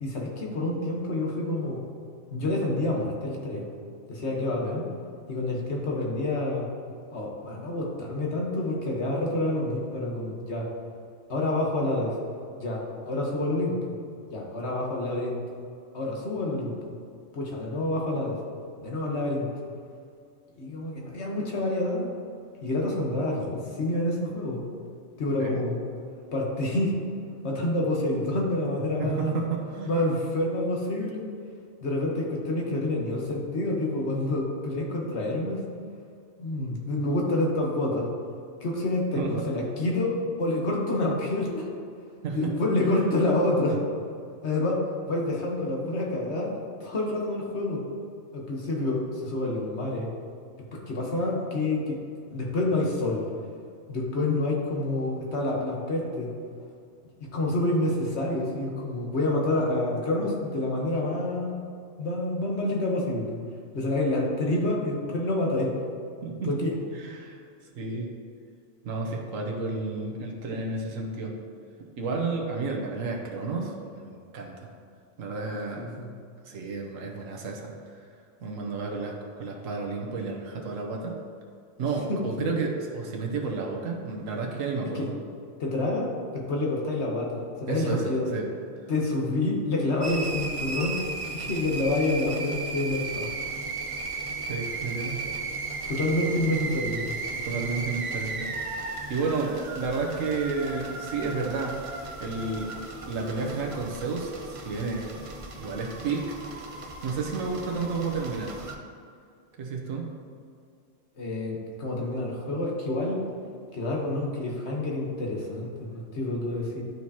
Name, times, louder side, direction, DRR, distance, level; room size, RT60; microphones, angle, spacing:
voice 1, 0.0-1.8 2.3-3.6 4.1-4.9 5.3-6.7 7.1-10.7 11.3-12.2 12.6-13.8 14.3-15.4 15.9-16.9 17.3-18.4 18.8-19.5 20.6-22.1 22.6-24.6 25.2-25.8 26.3-26.9 27.4-29.4 29.8-31.3 31.8-35.6 36.4-38.1 38.6-41.7 42.3-43.8 44.4-47.8 48.3-50.1 50.7-52.0 52.3-53.2 53.9-56.3 57.3-61.7 62.0-63.4 63.7-65.7 66.4-66.7 75.8-76.1 82.1-82.5 84.9-85.1 85.6-88.4 88.9-91.0 91.3-93.3 95.9-97.1 111.2-113.2 113.7-116.8, left 2 dB, 60° left, -2 dB, 1.4 m, -28 dB
voice 2, 29.0-30.0 39.2-39.3 42.2-42.4 42.8-43.0 66.2-66.5 66.9-67.4 67.7-68.1 68.8-71.3 72.0-73.7 74.1-74.7 75.2-75.9 76.4-78.0 78.4-81.2 81.8-85.1 87.7-88.4 94.5-95.2 97.5-98.5 99.1-102.7 103.1-105.0 105.6-106.4 107.0-108.6 109.6-110.1, right 4 dB, 90° right, 0 dB, 1.3 m, -31 dB
sound 1, 90.0-108.7, right 3 dB, 40° right, 0.5 m, -35 dB
11.5 x 4.6 x 2.8 m, 2.3 s
omnidirectional pair, 1.3 m